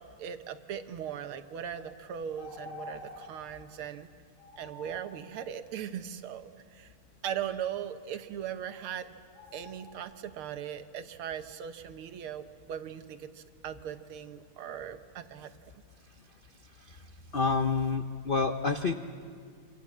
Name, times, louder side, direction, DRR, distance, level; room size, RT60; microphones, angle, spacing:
voice 1, 0.0-4.1 4.6-6.9 7.2-9.1 9.5-15.5, right 9 dB, 85° right, 9 dB, 1.9 m, -39 dB
sound 1, 1.7-1.9 2.4-3.3 4.4-5.0 8.7-8.8 9.3-9.9, left 3 dB, 35° left, 4.6 m, -47 dB
voice 2, 17.3-18.9, left 4 dB, 75° left, 7 dB, 0.5 m, -28 dB
26.5 x 26.0 x 7.4 m, 2.1 s
omnidirectional pair, 2.3 m